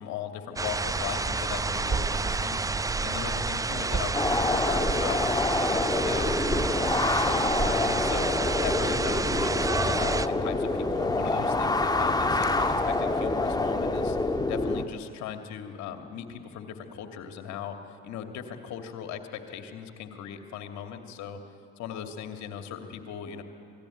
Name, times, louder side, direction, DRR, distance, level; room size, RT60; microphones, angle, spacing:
voice 1, 0.0-14.2 14.5-17.8 18.0-21.4 21.8-23.4, left 8 dB, 55° left, 6 dB, 2.6 m, -38 dB
sound 1, 0.6-10.3, right 3 dB, 10° right, 0.6 m, -29 dB
sound 2, 4.1-14.9, left 2 dB, 10° left, 1.9 m, -27 dB
sound 3, 6.0-13.0, left 5 dB, 30° left, 5.5 m, -45 dB
27.5 x 20.0 x 9.3 m, 2.4 s
figure-of-eight pair, 55°, 34 cm